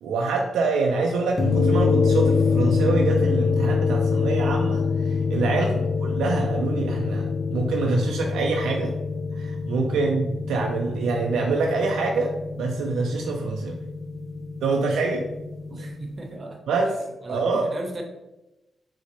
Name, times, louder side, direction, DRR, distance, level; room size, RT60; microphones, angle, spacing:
voice 1, 0.0-8.9 9.4-13.8 14.6-15.3 16.7-16.9 17.3-17.7, right 3 dB, 80° right, 1 dB, 0.3 m, -25 dB
sound 1, 1.4-15.9, left 5 dB, 45° left, 0.5 m, -25 dB
voice 2, 15.7-16.6 17.2-18.0, right 2 dB, 45° right, 3 dB, 0.7 m, -37 dB
4.1 x 2.1 x 2.9 m, 0.98 s
supercardioid pair, 45°, 0 cm